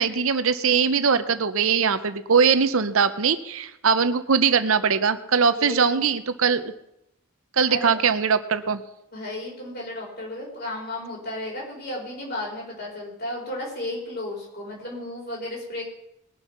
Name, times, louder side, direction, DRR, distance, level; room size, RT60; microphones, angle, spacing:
voice 1, 0.0-6.7 7.6-8.8, right 6 dB, 70° right, 12 dB, 0.7 m, -21 dB
voice 2, 5.5-6.2 7.7-8.0 9.1-15.8, left 1 dB, 45° left, -2 dB, 4.7 m, -34 dB
20.5 x 7.0 x 5.8 m, 0.85 s
head